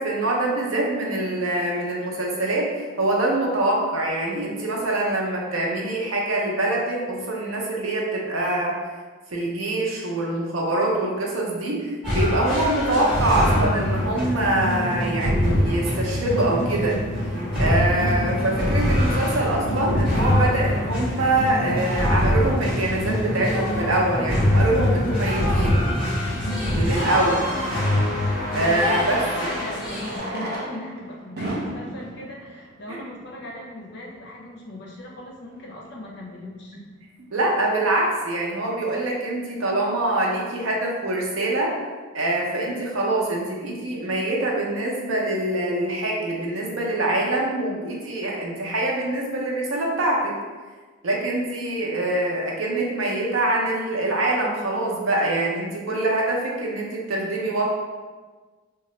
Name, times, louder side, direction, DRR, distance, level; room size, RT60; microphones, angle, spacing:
voice 1, 0.0-8.7 9.3-17.0 17.6-25.8 26.7-27.5 28.5-29.2 37.3-41.7 42.1-50.3 51.0-57.7, right 1 dB, 90° right, -2 dB, 0.7 m, -24 dB
sound 1, 12.0-30.2, left 1 dB, 5° right, 1.3 m, -23 dB
Fireworks, 26.4-26.5 28.7-28.8 29.9-33.6 34.4-34.5 34.7-34.8 35.0-35.1 35.6-35.8, right 1 dB, 50° right, 0.6 m, -34 dB
voice 2, 27.1-27.9 29.3-36.8, left 1 dB, 55° left, -1 dB, 0.5 m, -38 dB
2.8 x 2.3 x 3.0 m, 1.4 s
head